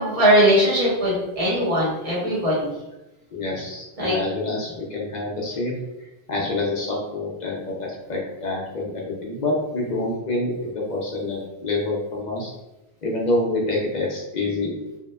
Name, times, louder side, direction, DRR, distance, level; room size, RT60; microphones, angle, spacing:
voice 1, 0.0-2.7 4.0-4.1, equal, 35° right, -8 dB, 1.0 m, -20 dB
voice 2, 3.3-12.5 13.0-14.8, left 2 dB, 55° left, -3 dB, 0.5 m, -27 dB
2.7 x 2.0 x 2.2 m, 0.98 s
omnidirectional pair, 1.1 m